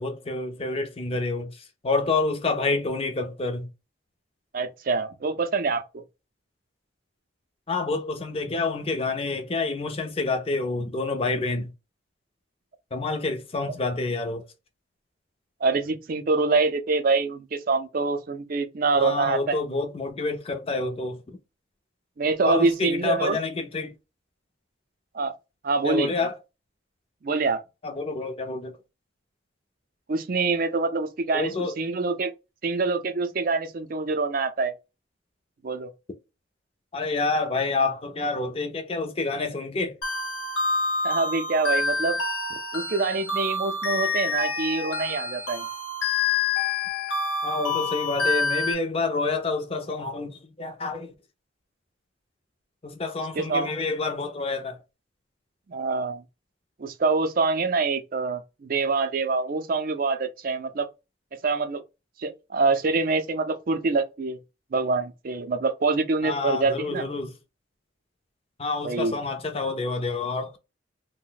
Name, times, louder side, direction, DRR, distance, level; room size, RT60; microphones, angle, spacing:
voice 1, 0.0-3.7 7.7-11.7 12.9-14.4 18.9-21.2 22.4-23.9 25.8-26.4 27.8-28.8 31.3-31.8 36.9-40.0 47.4-51.1 52.8-54.8 66.2-67.3 68.6-70.6, left 3 dB, 30° left, 0.5 m, -28 dB
voice 2, 4.5-6.0 15.6-19.6 22.2-23.4 25.1-25.3 25.6-26.1 27.2-27.6 30.1-32.3 32.6-34.7 35.6-35.9 41.0-42.2 42.7-45.7 53.4-53.7 55.7-56.2 56.8-60.9 61.4-61.8 62.2-64.4 64.7-67.1 68.8-69.2, right 3 dB, 45° right, 0.4 m, -25 dB
sound 1, 40.0-48.7, left 3 dB, 70° left, 0.8 m, -27 dB
2.5 x 2.1 x 3.8 m
head